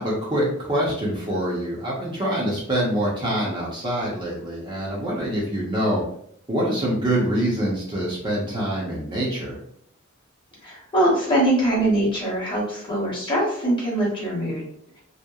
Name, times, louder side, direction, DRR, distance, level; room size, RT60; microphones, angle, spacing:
voice 1, 0.0-6.0 6.5-9.6, right 1 dB, 25° right, -5 dB, 0.6 m, -25 dB
voice 2, 10.6-14.6, right 1 dB, 25° left, -5 dB, 0.8 m, -22 dB
2.8 x 2.0 x 2.3 m, 0.66 s
head